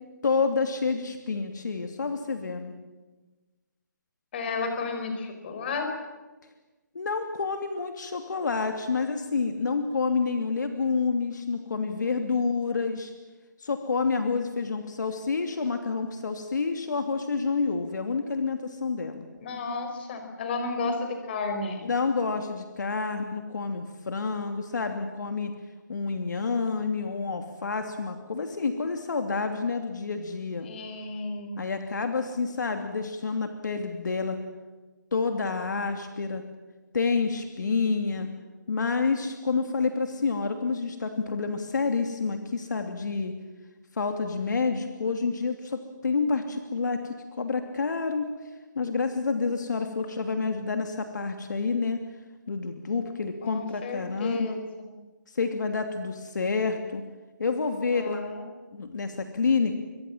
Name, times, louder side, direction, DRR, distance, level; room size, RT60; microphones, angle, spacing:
voice 1, 0.2-2.7 6.9-13.1 13.6-19.3 21.8-25.5 25.9-30.7 31.6-34.4 35.1-36.4 36.9-38.3 38.7-43.3 43.9-48.3 48.7-52.0 52.5-54.6 55.3-57.0 57.4-58.2 58.7-59.8, left 4 dB, 70° left, 6 dB, 2.9 m, -28 dB
voice 2, 4.3-5.9 19.4-21.9 30.6-31.6 53.4-54.5 54.8-54.9 57.8-58.4, left 3 dB, 30° left, 6 dB, 4.9 m, -32 dB
25.5 x 24.5 x 7.5 m, 1.2 s
hypercardioid pair, 165°, 10 cm